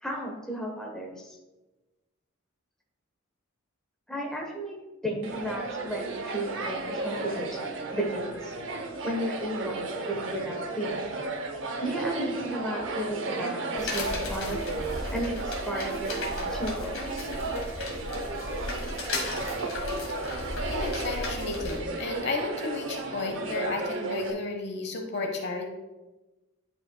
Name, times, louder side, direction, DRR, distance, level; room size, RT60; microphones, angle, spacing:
voice 1, 0.0-1.4 4.1-8.5 9.0-10.9 11.8-14.6 15.1-17.3, equal, 5° left, -1 dB, 1.0 m, -34 dB
sound 1, 5.2-24.3, right 2 dB, 60° right, 0.8 m, -34 dB
sound 2, 13.8-21.8, left 2 dB, 75° left, 1.6 m, -36 dB
voice 2, 20.3-25.7, left 3 dB, 55° left, 3 dB, 1.0 m, -33 dB
11.0 x 5.1 x 2.2 m, 1.1 s
head